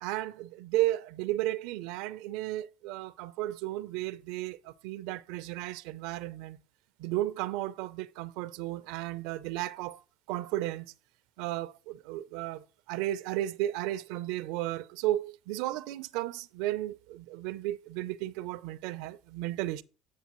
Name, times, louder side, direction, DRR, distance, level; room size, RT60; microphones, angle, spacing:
voice 1, 0.0-6.6 7.0-10.0 10.3-10.9 11.4-19.8, right 15 dB, 75° right, 0.4 m, -34 dB
8.2 x 6.6 x 3.0 m
supercardioid pair, 105°, 0 cm